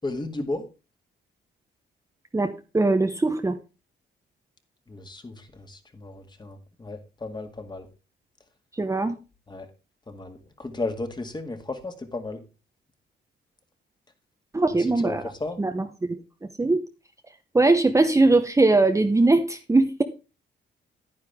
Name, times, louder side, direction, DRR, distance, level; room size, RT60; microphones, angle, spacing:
voice 1, 0.0-0.7 4.9-7.9 9.5-9.7 10.1-12.4 14.8-15.6, left 2 dB, 20° left, 7 dB, 2.0 m, -34 dB
voice 2, 2.3-3.6 8.8-9.1 14.5-15.2 15.6-16.2 16.6-16.8 17.5-20.0, right 2 dB, 15° right, 6 dB, 0.9 m, -21 dB
9.8 x 9.8 x 3.6 m, 0.30 s
cardioid pair, 90°, 20 cm